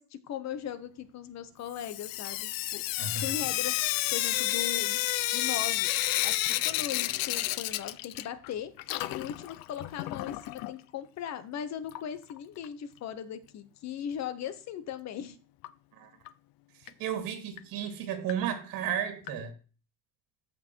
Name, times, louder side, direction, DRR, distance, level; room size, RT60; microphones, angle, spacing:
voice 1, 0.0-2.8 3.2-3.7 4.1-5.9 6.2-8.7 9.1-15.4, left 9 dB, 50° left, 1.1 m, -38 dB
Sink (filling or washing) / Drip, 1.8-8.5 8.8-10.7 11.9-12.0 12.3-12.4 12.6-12.7 15.6-15.7 16.3-16.4 16.9-17.0 17.6-17.7 18.3-18.4 19.3-19.4, left 16 dB, 85° left, 0.7 m, -31 dB
voice 2, 3.0-3.3 15.9-16.1 17.0-19.5, right 8 dB, 80° right, 2.7 m, -33 dB
14.0 x 5.9 x 4.6 m
cardioid pair, 165°, 34 cm